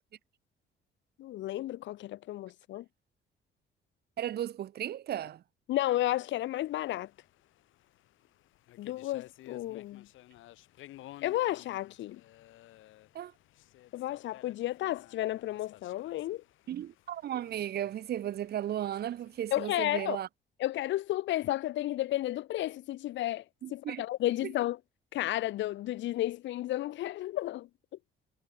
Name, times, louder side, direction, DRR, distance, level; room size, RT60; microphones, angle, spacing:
voice 1, 1.2-2.8 5.7-7.1 8.8-10.1 11.2-12.2 13.9-16.4 19.5-20.2 20.6-23.4 23.7-24.8 25.1-27.7, left 15 dB, 70° left, 0.8 m, -32 dB
voice 2, 4.2-5.4 13.1-13.3 16.7-20.3 23.6-24.0, right 11 dB, 55° right, 1.4 m, -35 dB
sound 1, 6.3-19.8, left 15 dB, 90° left, 3.5 m, -56 dB
cardioid pair, 155°, 20 cm